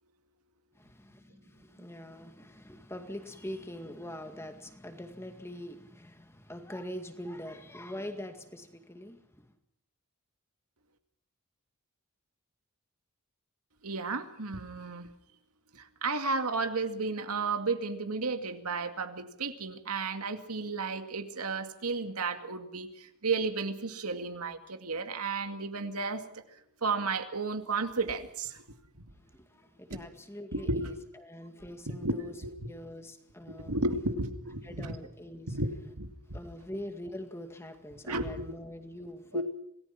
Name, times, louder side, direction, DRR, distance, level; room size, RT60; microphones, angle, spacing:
voice 1, 0.7-9.5 29.1-32.4 32.7-33.8 34.6-35.6 36.3-39.4, left 1 dB, 10° left, 2.0 m, -43 dB
voice 2, 13.8-15.1 16.0-22.9 23.2-26.2 26.8-28.5 29.9-30.0 30.5-30.9 31.9-32.7 33.5-35.0 35.5-35.7 36.0-36.4 38.1-38.5 39.3-39.4, right 3 dB, 90° right, 2.3 m, -33 dB
26.5 x 18.5 x 6.0 m
head